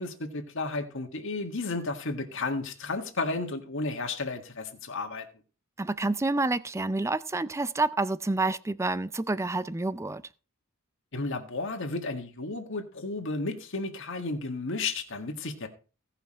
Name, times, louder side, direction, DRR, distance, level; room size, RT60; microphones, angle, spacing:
voice 1, 0.0-5.3 11.1-15.7, left 3 dB, 60° left, 1.8 m, -33 dB
voice 2, 5.8-10.2, right 2 dB, 15° right, 0.4 m, -28 dB
17.0 x 5.8 x 4.4 m
head